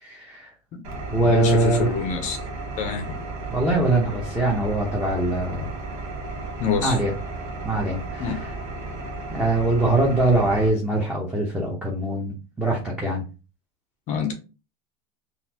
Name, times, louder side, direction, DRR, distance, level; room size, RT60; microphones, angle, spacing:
voice 1, 0.0-0.5 1.1-1.9 3.5-5.7 6.8-7.1 7.6-8.3 9.3-13.2, right 2 dB, 5° right, 0.8 m, -22 dB
Engine, 0.8-10.7, right 2 dB, 70° right, 1.1 m, -34 dB
voice 2, 1.2-2.4 2.8-3.2 6.6-7.0 8.2-8.3 14.1-14.3, left 6 dB, 40° left, 0.6 m, -26 dB
4.0 x 2.5 x 2.8 m
supercardioid pair, 140°, 19 cm